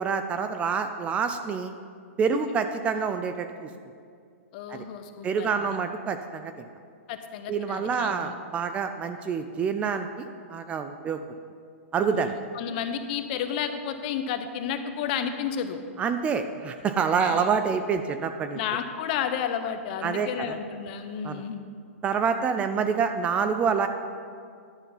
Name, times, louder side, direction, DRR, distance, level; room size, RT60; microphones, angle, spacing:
voice 1, 0.0-1.7 2.2-3.7 4.7-4.9 5.2-6.6 7.5-11.2 11.9-12.3 16.0-18.6 20.0-20.6 21.2-21.4 22.0-23.9, right 6 dB, 15° right, 8 dB, 0.3 m, -27 dB
voice 2, 4.5-5.7 7.1-8.4 12.0-15.8 17.2-17.5 18.5-21.6, left 8 dB, 40° left, 8 dB, 0.7 m, -32 dB
11.0 x 5.7 x 5.4 m, 2.2 s
hypercardioid pair, 150°, 7 cm